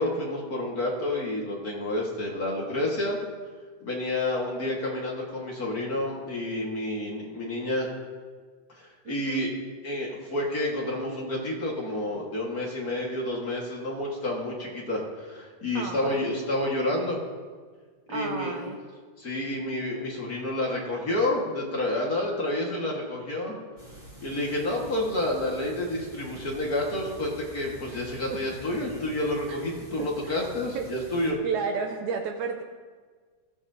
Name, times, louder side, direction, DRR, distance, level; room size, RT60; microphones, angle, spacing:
voice 1, 0.0-3.2 3.8-7.9 8.7-9.5 9.8-17.2 18.1-18.5 19.2-23.5 24.2-31.4, left 1 dB, 45° left, -3 dB, 1.2 m, -29 dB
voice 2, 9.0-9.5 15.7-16.2 18.1-18.8 30.2-30.4 30.7-30.9 31.4-32.6, right 5 dB, 80° right, 3 dB, 1.7 m, -32 dB
sound 1, 23.8-31.3, equal, 10° right, 2.1 m, -46 dB
20.5 x 14.0 x 2.8 m, 1.6 s
omnidirectional pair, 4.3 m